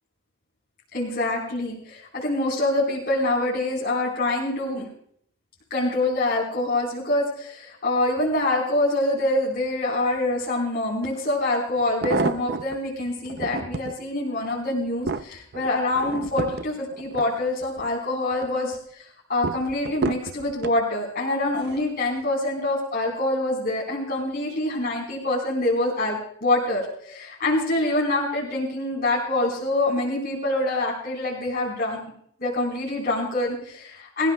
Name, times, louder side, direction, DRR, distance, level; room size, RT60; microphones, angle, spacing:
voice 1, 0.9-4.9 5.7-32.0 32.4-34.3, left 2 dB, 45° left, -4 dB, 4.3 m, -25 dB
sound 1, 11.0-11.1 11.8-12.8 13.3-14.0 14.5-17.9 18.3-18.8 19.4-20.8 21.6-21.9 22.2-22.3, right 3 dB, 50° right, 0.6 m, -30 dB
26.0 x 15.0 x 2.3 m, 0.65 s
head